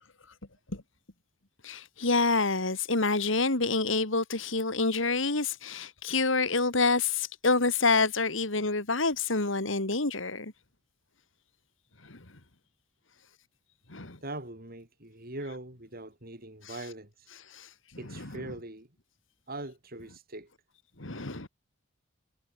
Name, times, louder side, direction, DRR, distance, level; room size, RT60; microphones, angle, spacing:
voice 1, 1.6-10.5 12.1-12.2 13.9-14.2 17.5-17.7 21.0-21.5, left 3 dB, 70° left, 2.9 m, -27 dB
voice 2, 14.2-17.3 18.0-18.9 19.5-20.5, right 2 dB, 50° right, 7.1 m, -41 dB
head